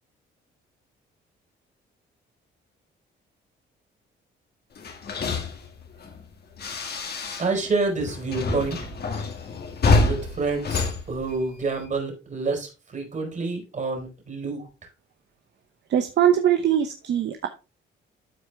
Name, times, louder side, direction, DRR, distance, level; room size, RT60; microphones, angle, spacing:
sound 1, 4.8-7.7 8.0-11.8, left 3 dB, 55° left, 2.1 m, -27 dB
voice 1, 7.4-8.8 10.0-14.7, right 3 dB, 40° right, 4.3 m, -28 dB
voice 2, 15.9-17.5, right 10 dB, 60° right, 0.9 m, -21 dB
13.0 x 4.4 x 3.4 m
cardioid pair, 90°, 20 cm